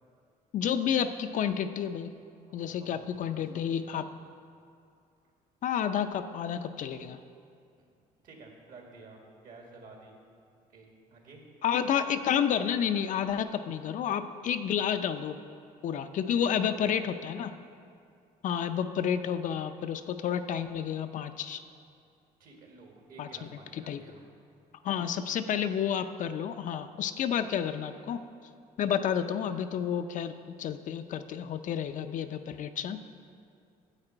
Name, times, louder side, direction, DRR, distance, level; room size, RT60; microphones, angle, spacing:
voice 1, 0.5-2.1 2.5-4.1 5.6-7.2 11.6-15.4 15.8-17.6 18.4-21.6 23.2-24.0 24.8-28.2 28.8-33.0, left 8 dB, 55° left, 9 dB, 0.5 m, -30 dB
voice 2, 2.5-4.0 7.8-7.9 8.2-10.1 10.7-11.4 16.4-17.0 22.4-24.3, right 3 dB, 60° right, 1 dB, 1.9 m, -52 dB
9.9 x 7.8 x 4.4 m, 2.4 s
cardioid pair, 90°, 16 cm